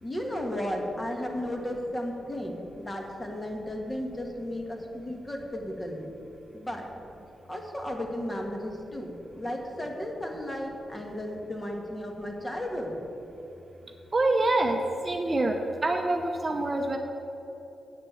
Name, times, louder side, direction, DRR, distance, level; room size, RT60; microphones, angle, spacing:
voice 1, 0.0-6.1 6.5-6.9 7.5-13.0, left 1 dB, 20° left, 1 dB, 1.6 m, -34 dB
voice 2, 14.1-15.6 15.8-17.0, right 2 dB, 30° right, 3 dB, 0.8 m, -26 dB
8.6 x 6.7 x 8.6 m, 3.0 s
cardioid pair, 105°, 0 cm